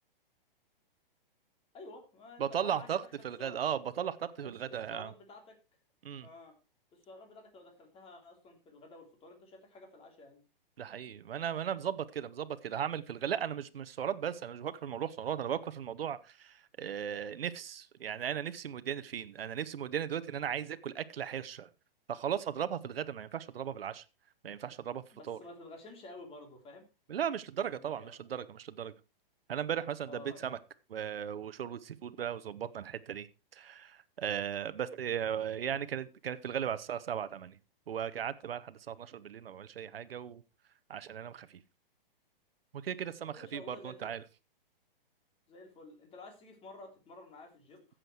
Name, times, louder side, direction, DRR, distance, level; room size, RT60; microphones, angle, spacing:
voice 1, 1.7-3.6 4.4-5.6 6.2-6.5 6.9-10.4 25.1-26.8 27.6-28.2 30.1-30.6 43.2-44.2 45.5-47.9, left 2 dB, 20° left, 3.3 m, -51 dB
voice 2, 2.4-5.1 6.0-6.3 10.8-21.7 22.1-24.0 24.4-25.4 27.1-28.9 29.5-30.6 30.9-37.6 37.9-40.4 40.9-41.6 42.7-44.2, right 8 dB, 85° right, 1.1 m, -37 dB
14.5 x 7.6 x 4.6 m
hypercardioid pair, 140°, 29 cm